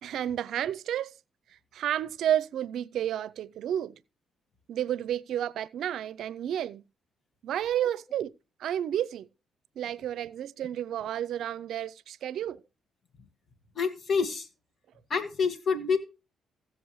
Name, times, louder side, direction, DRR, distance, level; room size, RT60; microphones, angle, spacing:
voice 1, 0.0-1.1 1.7-4.0 4.7-6.8 7.4-8.3 8.6-9.3 9.8-12.6, right 10 dB, 75° right, 0.5 m, -31 dB
voice 2, 13.8-14.5 15.1-16.0, left 5 dB, 45° left, 2.0 m, -27 dB
15.5 x 7.5 x 3.1 m
cardioid pair, 90°, 0 cm